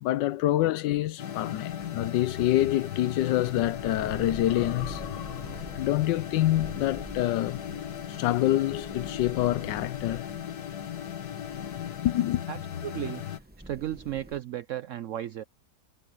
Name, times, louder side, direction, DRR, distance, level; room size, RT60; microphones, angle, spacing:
voice 1, 0.0-7.6 8.1-10.3 12.0-12.4, left 14 dB, 90° left, 1.3 m, -26 dB
sound 1, 1.2-13.4, left 10 dB, 60° left, 1.7 m, -37 dB
sound 2, 1.7-14.4, right 1 dB, 10° right, 0.5 m, -46 dB
voice 2, 12.5-15.4, right 12 dB, 70° right, 0.7 m, -35 dB
omnidirectional pair, 1.9 m